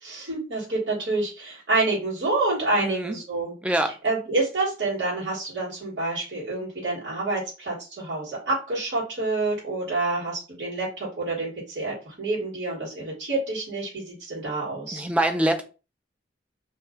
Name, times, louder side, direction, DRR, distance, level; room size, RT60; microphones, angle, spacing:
voice 1, 0.0-3.5 4.0-15.0, right 2 dB, 75° right, 1.4 m, -28 dB
voice 2, 2.8-3.2 3.6-3.9 14.9-15.6, right 1 dB, 5° right, 0.3 m, -24 dB
2.5 x 2.2 x 3.5 m
head